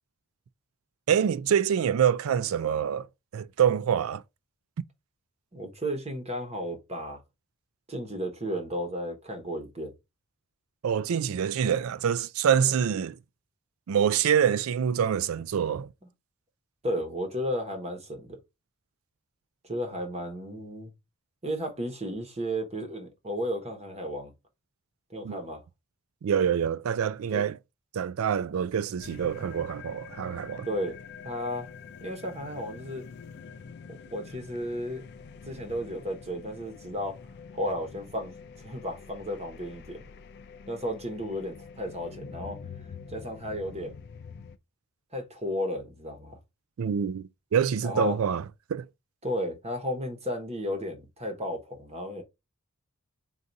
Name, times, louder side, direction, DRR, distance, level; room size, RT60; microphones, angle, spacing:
voice 1, 1.1-3.1 3.3-4.2 10.8-13.2 13.9-15.9 25.2-25.4 26.2-27.6 27.9-30.7 46.8-48.4 48.7-48.9, right 8 dB, 70° right, 0.4 m, -26 dB
voice 2, 5.5-7.2 7.9-9.9 16.8-18.4 19.6-20.9 21.4-24.3 25.1-25.6 27.3-27.4 30.6-31.0 31.2-31.7 32.0-33.0 33.9-35.0 35.5-37.2 37.5-40.1 40.7-42.6 43.1-44.0 45.1-46.4 47.8-48.2 49.2-52.2, equal, 30° right, 1.1 m, -33 dB
sound 1, 29.0-44.6, left 6 dB, 50° left, 0.4 m, -46 dB
4.0 x 2.6 x 4.6 m
head